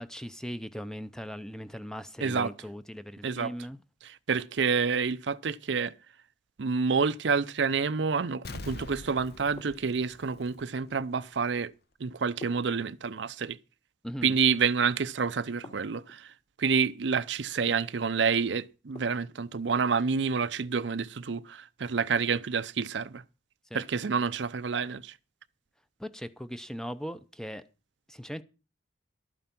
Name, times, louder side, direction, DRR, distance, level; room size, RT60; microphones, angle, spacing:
voice 1, 0.0-3.8 14.0-14.4 23.7-23.8 26.0-27.6 28.1-28.4, equal, 5° left, 0.6 m, -39 dB
voice 2, 2.2-2.5 3.2-3.5 4.0-5.9 6.6-11.7 12.0-13.6 14.2-16.3 16.6-23.2 23.7-25.1, right 5 dB, 75° right, 0.6 m, -28 dB
Explosion, 8.4-11.0 11.4-11.5, left 2 dB, 55° left, 0.9 m, -44 dB
sound 1, 9.6-10.3 12.4-13.4 15.6-16.4 18.9-19.6, left 1 dB, 35° left, 2.6 m, -50 dB
12.5 x 9.0 x 6.0 m
head